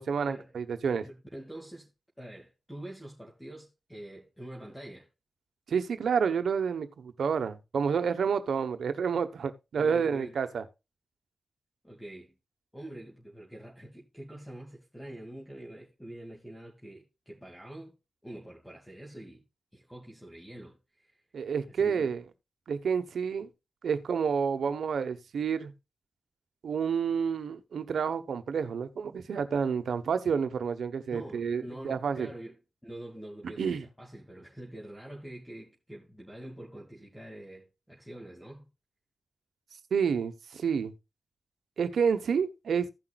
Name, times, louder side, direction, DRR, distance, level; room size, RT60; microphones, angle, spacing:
voice 1, 0.0-1.0 5.7-10.6 21.3-22.2 22.7-23.5 23.8-25.7 26.6-32.3 33.4-33.8 39.9-40.9 41.8-42.9, right 6 dB, 85° right, 1.1 m, -29 dB
voice 2, 0.8-1.9 2.2-5.1 9.8-10.3 11.8-12.4 12.7-18.0 18.2-19.4 19.7-21.2 21.7-22.1 31.1-38.6, right 1 dB, 5° left, 2.4 m, -45 dB
16.0 x 5.9 x 2.4 m
cardioid pair, 65°, 0 cm